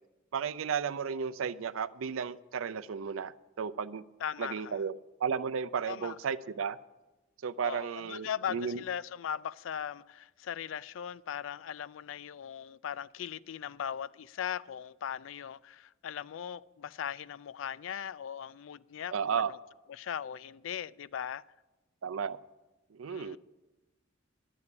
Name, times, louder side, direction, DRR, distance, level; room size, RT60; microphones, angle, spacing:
voice 1, 0.3-4.0 4.4-6.8 7.4-8.8 19.1-19.5 22.0-22.4 22.9-23.4, right 6 dB, 90° right, 0.5 m, -34 dB
voice 2, 4.2-4.8 5.9-6.2 7.6-19.6 19.9-21.4 23.1-23.4, left 8 dB, 70° left, 0.3 m, -39 dB
11.0 x 7.2 x 9.6 m
head